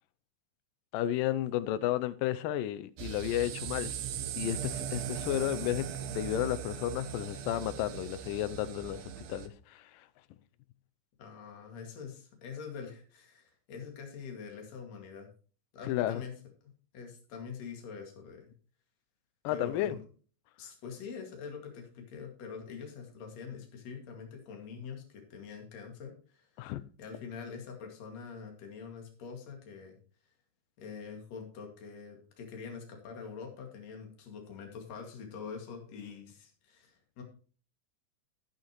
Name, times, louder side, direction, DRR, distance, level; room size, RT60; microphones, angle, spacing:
voice 1, 0.9-4.0 4.4-10.1 15.9-16.2 19.4-20.0 26.6-26.8, left 13 dB, 85° left, 2.3 m, -32 dB
sound 1, 3.0-9.5, right 9 dB, 70° right, 1.7 m, -39 dB
voice 2, 11.2-15.3 15.7-16.3 16.9-18.5 19.5-20.0 20.6-26.7 27.0-30.0 30.8-37.2, left 6 dB, 55° left, 3.3 m, -45 dB
18.0 x 6.5 x 3.0 m
omnidirectional pair, 3.8 m